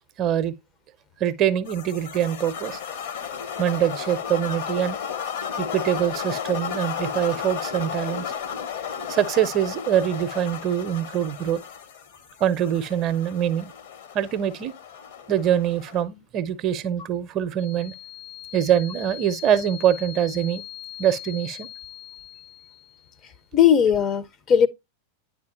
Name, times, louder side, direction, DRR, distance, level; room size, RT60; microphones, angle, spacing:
voice 1, 0.2-0.5 1.2-2.8 3.6-5.0 5.6-8.2 9.1-11.6 12.4-13.7 14.1-14.7 15.3-17.9 18.5-20.6 21.0-21.7, right 10 dB, 35° right, 0.5 m, -24 dB
sound 1, 1.7-16.0, left 7 dB, 55° left, 0.8 m, -33 dB
sound 2, 17.6-23.2, left 14 dB, 80° left, 1.4 m, -41 dB
voice 2, 23.5-24.7, left 8 dB, 30° left, 0.5 m, -18 dB
9.5 x 4.9 x 2.4 m
figure-of-eight pair, 90°, 0 cm